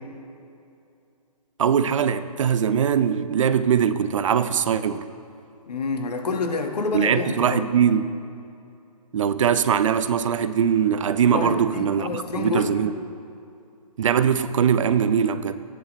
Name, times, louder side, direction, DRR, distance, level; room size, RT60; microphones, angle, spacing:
voice 1, 1.6-5.1 6.9-8.1 9.1-12.9 14.0-15.6, right 8 dB, 55° right, 0.6 m, -21 dB
voice 2, 5.7-7.6 11.3-12.8, left 4 dB, 85° left, 1.4 m, -28 dB
15.5 x 10.0 x 3.1 m
hypercardioid pair, 160°, 20 cm